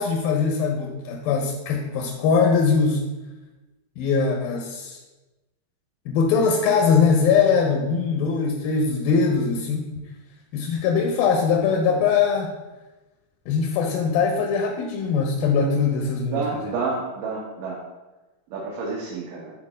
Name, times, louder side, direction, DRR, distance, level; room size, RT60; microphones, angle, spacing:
voice 1, 0.0-3.0 4.0-5.0 6.1-10.1 10.5-12.5 13.5-16.7, left 5 dB, 80° left, 2 dB, 2.5 m, -21 dB
voice 2, 16.3-17.8 18.5-19.5, right 4 dB, 70° right, -5 dB, 2.6 m, -29 dB
9.8 x 4.3 x 4.2 m, 1.1 s
omnidirectional pair, 4.2 m